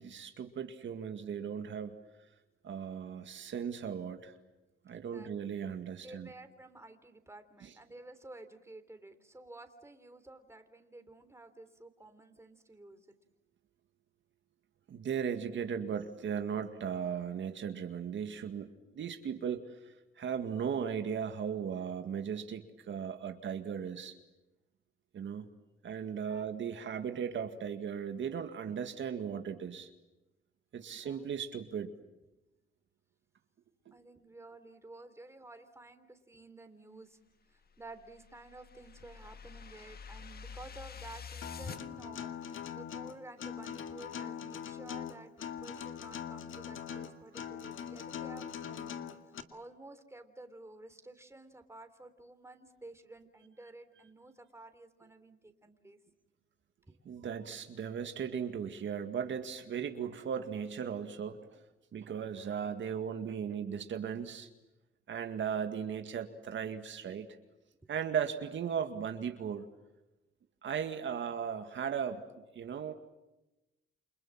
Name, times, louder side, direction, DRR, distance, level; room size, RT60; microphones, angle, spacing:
voice 1, 0.0-2.0 2.6-4.3 4.9-6.3 7.6-7.7 14.9-18.7 18.9-24.2 25.1-25.5 25.8-29.9 30.7-31.9 33.9-34.0 46.9-47.0 57.1-61.6 61.9-64.5 65.1-67.3 67.9-69.6 70.6-72.2 72.6-72.9, right 7 dB, 65° right, 7 dB, 2.1 m, -37 dB
voice 2, 4.9-5.3 6.0-13.1 26.0-26.5 30.8-31.6 33.9-37.2 37.5-56.0 56.9-57.3 67.8-67.9, right 2 dB, 15° right, 8 dB, 3.4 m, -52 dB
sound 1, 37.8-41.8, left 6 dB, 50° left, 1.6 m, -47 dB
Acoustic guitar, 41.4-49.4, left 8 dB, 75° left, 2.1 m, -42 dB
29.0 x 26.5 x 7.4 m, 0.99 s
cardioid pair, 90°, 21 cm